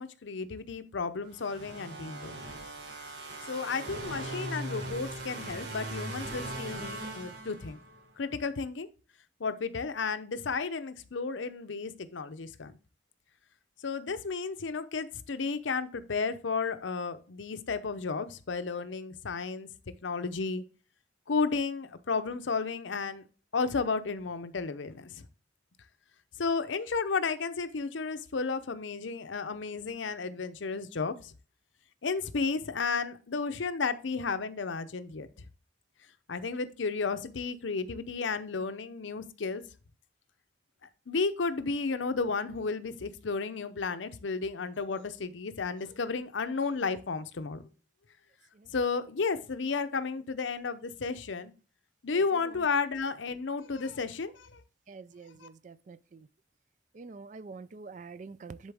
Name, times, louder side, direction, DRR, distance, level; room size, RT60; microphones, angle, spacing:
voice 1, 0.0-2.4 3.5-7.8 8.2-8.9 9.4-12.7 13.8-19.7 20.0-20.6 21.3-23.2 23.5-25.2 26.4-31.3 32.0-35.3 36.3-39.6 41.1-47.6 48.7-51.5 52.0-54.6 55.4-55.5, left 4 dB, 80° left, 0.7 m, -33 dB
sound 1, 1.3-8.0, right 1 dB, 65° right, 1.6 m, -40 dB
voice 2, 54.9-56.0 57.0-58.7, right 4 dB, 40° right, 0.3 m, -46 dB
10.0 x 4.1 x 3.5 m
head